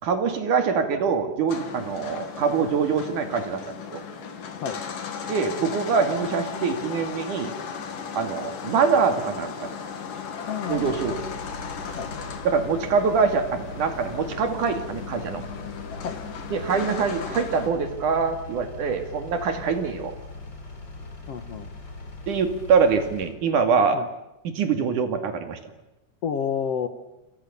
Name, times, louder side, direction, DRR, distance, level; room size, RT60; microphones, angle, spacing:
voice 1, 0.0-3.6 3.9-4.0 5.3-7.6 8.1-9.7 10.7-11.3 12.4-15.4 16.5-20.2 22.3-24.0 24.4-25.6, right 5 dB, 75° right, 7 dB, 3.7 m, -24 dB
sound 1, 1.5-17.7, left 6 dB, 85° left, 4.0 m, -36 dB
voice 2, 10.5-11.2 12.0-12.1 16.0-16.2 21.3-21.7 23.9-24.1 26.2-26.9, left 7 dB, 60° left, 10 dB, 2.0 m, -29 dB
Engine, 10.7-23.3, left 2 dB, 30° left, 4.3 m, -40 dB
28.0 x 27.5 x 7.0 m, 0.95 s
omnidirectional pair, 3.7 m